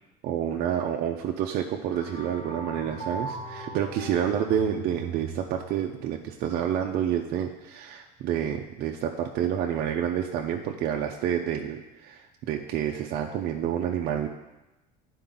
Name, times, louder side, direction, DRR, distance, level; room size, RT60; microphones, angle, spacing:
voice 1, 0.2-14.3, right 9 dB, 60° right, 2 dB, 0.6 m, -29 dB
sound 1, 1.9-5.9, right 2 dB, 35° left, 1.8 m, -39 dB
9.9 x 4.5 x 3.9 m, 1.0 s
supercardioid pair, 105°, 19 cm